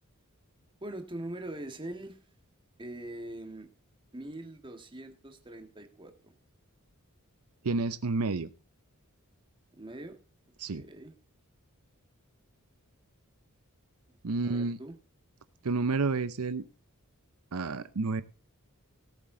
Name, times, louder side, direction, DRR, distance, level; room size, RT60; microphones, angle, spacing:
voice 1, 0.8-2.2 2.8-3.7 4.1-6.3 9.7-10.2 10.7-11.1 14.4-14.9, right 1 dB, 20° right, 6 dB, 1.7 m, -42 dB
voice 2, 7.6-8.5 10.6-10.8 14.2-14.8 15.6-16.6 17.5-18.2, right 3 dB, 75° right, 13 dB, 0.7 m, -30 dB
18.0 x 7.5 x 3.8 m, 0.34 s
head